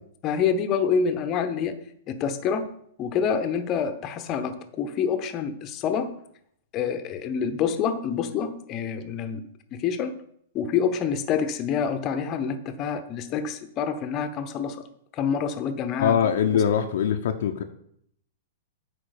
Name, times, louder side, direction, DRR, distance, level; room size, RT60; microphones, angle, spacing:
voice 1, 0.2-1.8 2.1-2.7 3.0-6.1 6.7-9.4 9.7-10.1 10.5-14.8 15.1-16.2 16.5-16.6, left 7 dB, 35° left, 9 dB, 1.0 m, -27 dB
voice 2, 16.0-17.6, left 8 dB, 60° left, 6 dB, 0.8 m, -22 dB
8.8 x 4.6 x 6.7 m, 0.68 s
figure-of-eight pair, 105°, 0 cm